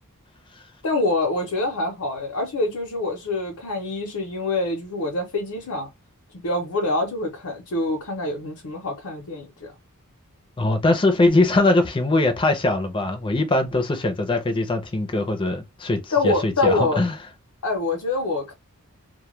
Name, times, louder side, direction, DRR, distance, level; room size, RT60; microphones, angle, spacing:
voice 1, 0.8-5.9 6.4-9.7 16.1-17.0 17.6-18.5, left 2 dB, 85° left, 0.7 m, -25 dB
voice 2, 10.6-17.2, left 2 dB, 20° left, 0.5 m, -21 dB
2.2 x 2.2 x 3.0 m
head